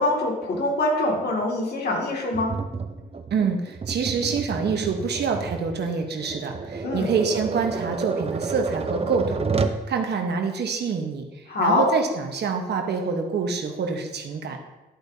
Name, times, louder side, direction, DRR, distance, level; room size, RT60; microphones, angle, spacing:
voice 1, 0.0-2.5 6.8-7.1 11.5-11.8, left 2 dB, 65° left, -1 dB, 2.4 m, -24 dB
Tap, 2.3-9.8, right 4 dB, 35° right, 0.7 m, -30 dB
voice 2, 3.3-9.6 9.9-11.2 11.6-14.6, right 5 dB, 75° right, 4 dB, 1.2 m, -26 dB
11.0 x 8.3 x 2.8 m, 1.1 s
cardioid pair, 70°, 18 cm